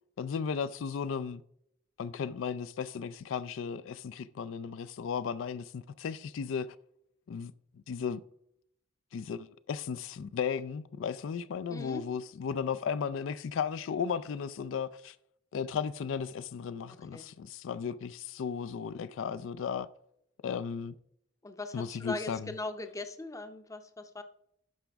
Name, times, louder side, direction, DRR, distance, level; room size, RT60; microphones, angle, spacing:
voice 1, 0.2-1.4 2.0-6.8 7.3-8.2 9.1-15.2 15.5-19.9 20.4-20.9 21.7-22.5, left 6 dB, 80° left, 0.4 m, -35 dB
voice 2, 11.7-12.0 16.9-17.3 21.4-24.2, left 2 dB, 15° left, 0.6 m, -40 dB
12.0 x 5.0 x 3.4 m
head